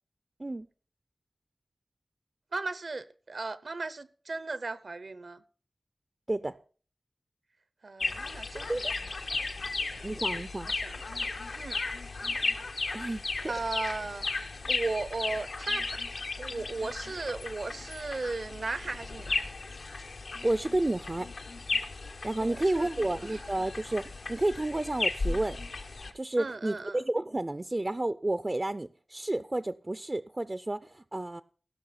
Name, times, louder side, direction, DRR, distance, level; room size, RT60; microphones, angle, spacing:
voice 1, 2.5-5.4 7.8-8.9 9.7-10.1 10.8-11.3 11.6-11.8 13.5-14.2 14.7-15.8 16.4-19.4 22.4-23.4 26.4-27.0, right 3 dB, 70° right, 0.7 m, -36 dB
sound 1, 8.0-26.1, left 3 dB, 85° left, 1.2 m, -35 dB
voice 2, 10.0-10.7 12.9-13.5 20.4-21.3 22.2-25.6 26.1-31.4, right 2 dB, 30° right, 0.4 m, -31 dB
16.5 x 6.1 x 5.8 m
wide cardioid pair, 80°, 0 cm